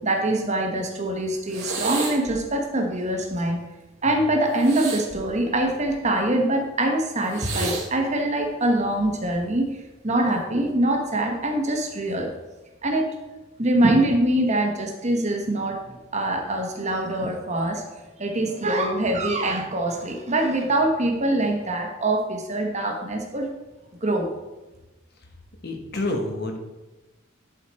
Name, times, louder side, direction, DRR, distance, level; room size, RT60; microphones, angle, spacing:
voice 1, 0.0-3.6 4.0-9.6 10.0-12.3 12.8-13.1 13.6-15.8 16.1-17.8 18.2-23.5 24.0-24.3, right 1 dB, 35° right, 2 dB, 1.2 m, -24 dB
sound 1, 1.5-2.4 4.5-6.1 7.3-7.9 9.0-9.3, right 3 dB, 85° right, 1.8 m, -32 dB
voice 2, 25.6-26.6, left 2 dB, 55° left, 3 dB, 1.3 m, -28 dB
10.5 x 5.0 x 4.3 m, 1.1 s
head